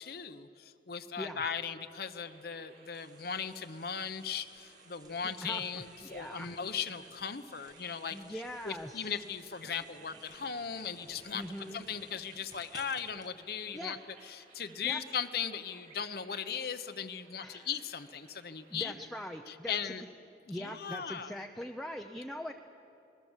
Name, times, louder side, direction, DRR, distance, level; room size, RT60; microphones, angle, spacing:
voice 1, 0.0-11.4 11.7-14.0 14.2-18.9 19.5-20.0 20.5-21.3, left 7 dB, 55° left, 9 dB, 0.9 m, -38 dB
sound 1, 2.2-18.8, right 4 dB, 55° right, 6.6 m, -59 dB
sound 2, 2.9-13.3, right 3 dB, 20° right, 1.2 m, -59 dB
voice 2, 5.4-6.5 8.1-9.1 11.3-11.8 13.7-14.0 14.8-15.0 17.4-17.7 18.7-20.0 20.5-22.5, equal, ahead, 2 dB, 0.7 m, -42 dB
27.5 x 20.5 x 7.4 m, 2.9 s
head